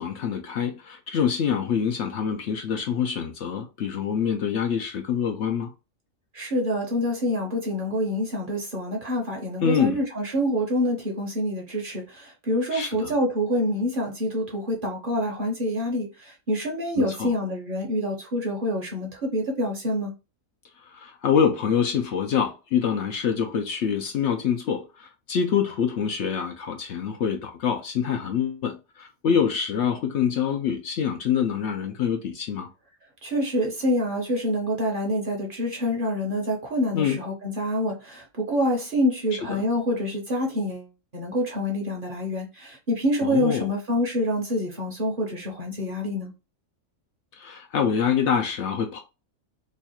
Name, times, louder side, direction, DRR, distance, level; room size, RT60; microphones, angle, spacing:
voice 1, 0.0-5.7 9.6-10.0 12.7-13.1 17.0-17.3 20.9-32.7 36.9-37.2 39.5-39.6 43.2-43.7 47.4-49.0, left 7 dB, 65° left, 0.8 m, -25 dB
voice 2, 6.3-20.1 33.2-40.9 41.1-46.3, equal, 45° right, 1.0 m, -26 dB
3.1 x 2.4 x 4.2 m
omnidirectional pair, 1.4 m